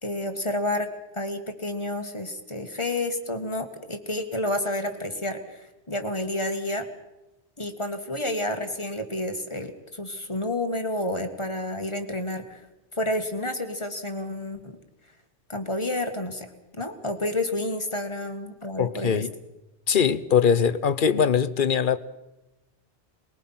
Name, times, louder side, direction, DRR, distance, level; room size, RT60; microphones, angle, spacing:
voice 1, 0.0-6.9 7.6-12.6 13.0-14.8 15.5-16.5 16.8-19.2, left 1 dB, 25° left, 2.1 m, -30 dB
voice 2, 18.8-19.3 19.9-22.0, left 7 dB, 50° left, 1.0 m, -21 dB
24.0 x 21.0 x 5.8 m
omnidirectional pair, 1.1 m